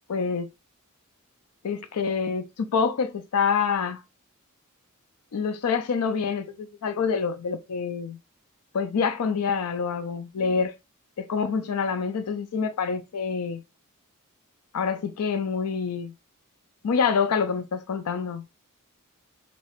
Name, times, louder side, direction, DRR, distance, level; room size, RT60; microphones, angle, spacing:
voice 1, 0.1-0.5 1.6-4.0 5.3-8.2 8.7-10.7 11.2-13.6 14.7-16.1 16.8-18.4, left 5 dB, 80° left, 0.4 m, -26 dB
3.1 x 2.9 x 3.0 m
head